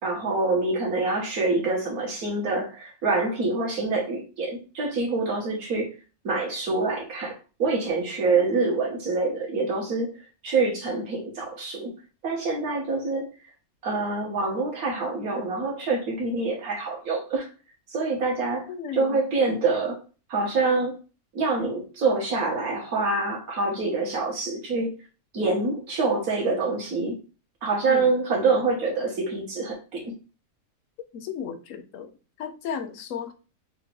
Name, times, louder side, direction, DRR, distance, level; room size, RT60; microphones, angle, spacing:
voice 1, 0.0-6.0 6.2-10.1 10.4-11.9 12.2-13.3 13.8-17.5 17.9-20.0 20.3-21.0 21.3-24.9 25.3-27.2 27.6-30.1, right 3 dB, 80° right, 1.9 m, -26 dB
voice 2, 18.7-19.2 27.9-28.1 31.1-32.1 32.4-33.3, left 7 dB, 70° left, 1.0 m, -34 dB
5.8 x 2.5 x 3.4 m
omnidirectional pair, 1.5 m